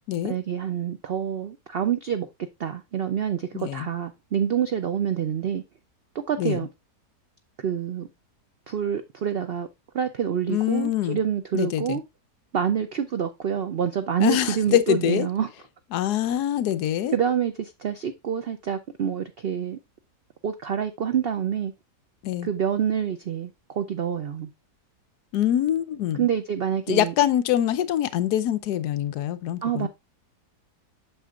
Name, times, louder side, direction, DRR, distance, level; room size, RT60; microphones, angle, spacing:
voice 1, 0.2-2.3 2.6-5.6 6.1-6.7 7.6-8.1 8.7-9.7 9.9-12.0 12.5-15.5 17.1-19.8 20.4-21.7 22.4-24.5 26.2-27.1 29.6-29.9, right 8 dB, 90° right, 0.5 m, -27 dB
voice 2, 3.5-3.9 6.4-6.6 10.5-11.2 11.5-12.0 14.2-15.3 15.9-17.1 22.2-22.5 25.3-26.3 26.9-29.9, left 11 dB, 75° left, 1.2 m, -24 dB
8.0 x 6.4 x 2.3 m
omnidirectional pair, 1.8 m